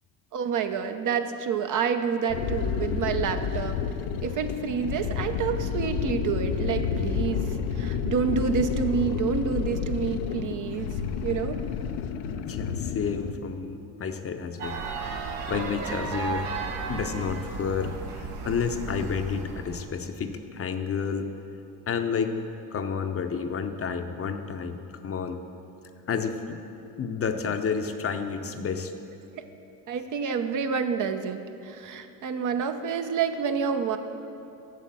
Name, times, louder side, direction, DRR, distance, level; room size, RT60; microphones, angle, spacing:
voice 1, 0.3-3.8 4.2-10.9 11.2-11.7 29.9-34.0, right 6 dB, 50° right, 8 dB, 0.7 m, -28 dB
sound 1, 2.3-13.3, left 7 dB, 85° left, 0.7 m, -30 dB
voice 2, 12.5-14.8 15.5-16.5 16.9-21.3 21.9-22.4 22.7-25.4 26.1-26.6 27.0-28.9, left 6 dB, 35° left, 7 dB, 0.7 m, -30 dB
sound 2, 14.6-19.9, right 4 dB, 75° right, 1.4 m, -34 dB
8.4 x 6.7 x 7.6 m, 2.8 s
supercardioid pair, 85°, 41 cm